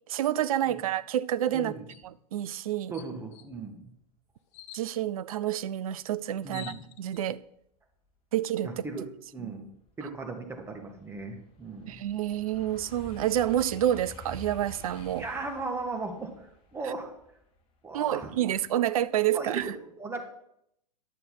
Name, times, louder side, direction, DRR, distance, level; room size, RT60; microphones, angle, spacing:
voice 1, 0.1-1.7 2.0-2.9 4.7-7.4 8.3-8.9 9.4-9.5 11.9-15.2 17.9-19.7, right 11 dB, 55° right, 0.5 m, -28 dB
voice 2, 1.5-1.9 2.9-3.9 6.4-6.9 8.6-9.0 9.3-9.7 10.0-12.0 15.2-17.1 17.8-18.5 19.3-20.2, right 3 dB, 10° right, 1.6 m, -37 dB
sound 1, 1.9-2.1 2.5-2.6 2.9-3.5 4.5-4.9 6.0-6.1 6.3-7.3, left 12 dB, 45° left, 0.8 m, -47 dB
sound 2, 9.0-9.1 9.5-18.6 19.0-19.4, left 1 dB, 25° left, 1.4 m, -49 dB
10.5 x 6.7 x 5.5 m
figure-of-eight pair, 105°, 21 cm